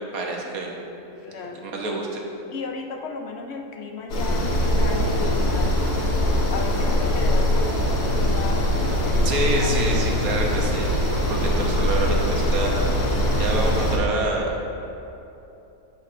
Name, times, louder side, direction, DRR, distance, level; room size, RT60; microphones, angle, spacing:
voice 1, 0.1-0.7 1.6-2.2 9.2-12.8 13.4-14.5, right 2 dB, 70° right, 0 dB, 1.4 m, -27 dB
voice 2, 1.2-1.7 2.5-5.8 6.5-10.1, left 4 dB, 60° left, 3 dB, 0.7 m, -35 dB
sound 1, 4.1-14.0, left 1 dB, 90° left, 1.7 m, -22 dB
15.0 x 5.2 x 2.6 m, 2.9 s
omnidirectional pair, 1.6 m